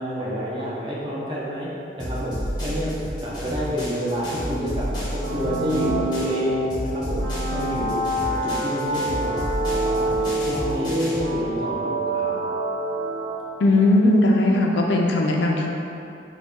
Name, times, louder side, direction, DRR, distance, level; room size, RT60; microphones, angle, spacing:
voice 1, 0.0-1.7 2.0-2.9 3.2-9.4 9.7-10.2 10.5-12.3, equal, 25° right, -6 dB, 0.6 m, -29 dB
sound 1, 2.0-6.4 6.7-11.3, equal, 25° left, 0.7 m, -31 dB
sound 2, 5.2-13.8, right 1 dB, 70° right, 0.3 m, -27 dB
voice 2, 13.6-15.7, left 2 dB, 75° left, 0 dB, 0.4 m, -18 dB
3.9 x 2.2 x 3.5 m, 2.7 s
head